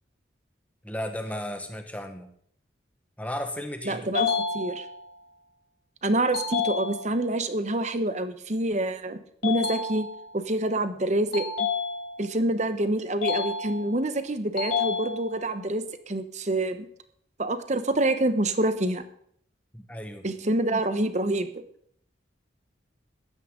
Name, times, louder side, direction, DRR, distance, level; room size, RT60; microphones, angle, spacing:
voice 1, 0.8-2.3 3.2-4.1 19.7-20.2, left 1 dB, 10° left, 5 dB, 1.4 m, -34 dB
voice 2, 3.8-4.8 6.0-10.1 10.3-11.7 12.2-16.9 17.4-19.0 20.2-21.5, right 1 dB, 40° right, 10 dB, 1.0 m, -27 dB
sound 1, 4.1-5.2 6.3-7.3 9.4-10.4 11.3-12.4 13.2-14.1 14.6-15.6, left 5 dB, 55° left, 3.1 m, -30 dB
15.0 x 12.5 x 3.9 m, 0.65 s
head